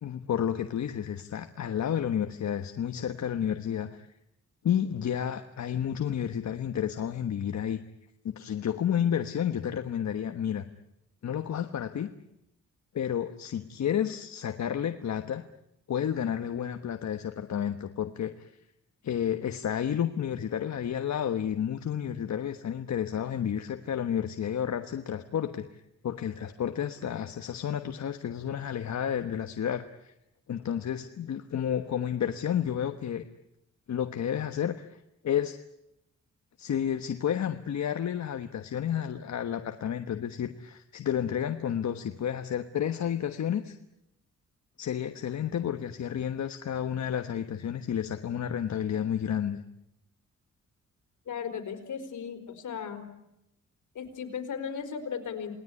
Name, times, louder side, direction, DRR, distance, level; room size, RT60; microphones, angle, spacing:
voice 1, 0.0-4.1 4.6-7.8 8.2-10.6 11.2-12.1 12.9-15.4 15.9-18.5 19.0-30.1 30.5-33.2 33.9-35.0 35.2-35.6 36.6-43.8 44.8-49.6, left 9 dB, 65° left, 7 dB, 1.3 m, -31 dB
voice 2, 51.3-53.1 53.9-55.6, left 7 dB, 80° left, 7 dB, 4.3 m, -36 dB
29.0 x 19.5 x 9.8 m, 0.87 s
cardioid pair, 105°, 30 cm